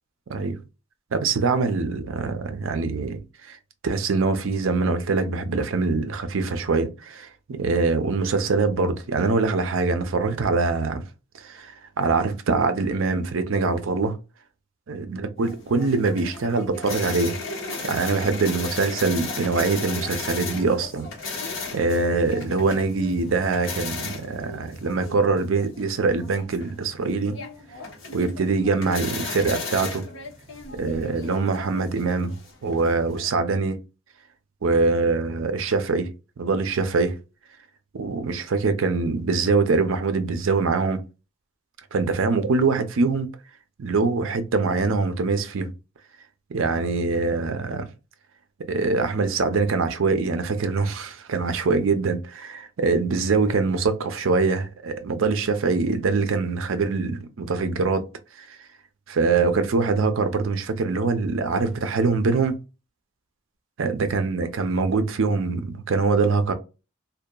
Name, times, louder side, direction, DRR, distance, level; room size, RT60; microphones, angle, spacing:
voice 1, 1.1-3.6 3.8-11.0 11.4-14.2 14.9-17.4 17.8-21.5 21.7-27.4 28.1-30.1 30.7-32.4 32.6-33.8 34.6-36.1 36.4-37.2 37.9-41.0 41.9-43.3 43.8-45.7 46.5-47.9 48.7-58.1 58.4-58.5 59.1-62.5 63.8-66.5, right 4 dB, 65° right, 0.5 m, -23 dB
sound 1, 15.4-33.3, left 4 dB, 65° left, 0.9 m, -36 dB
2.8 x 2.2 x 2.2 m
head